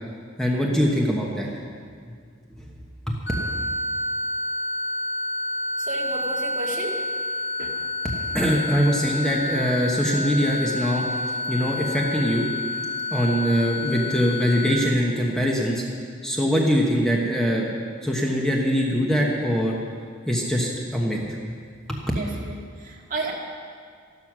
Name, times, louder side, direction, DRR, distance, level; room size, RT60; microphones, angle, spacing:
voice 1, 0.4-1.5 3.1-3.2 8.0-12.5 13.1-15.8 16.2-17.7 18.0-19.7 20.3-21.6 21.9-22.0, equal, 5° left, -2 dB, 1.2 m, -23 dB
sound 1, 3.3-14.7, left 2 dB, 30° left, 2.2 m, -29 dB
voice 2, 5.8-7.0 7.6-7.7 13.2-13.4 22.1-23.3, right 2 dB, 40° right, -2 dB, 2.2 m, -32 dB
14.0 x 12.0 x 6.2 m, 2.1 s
head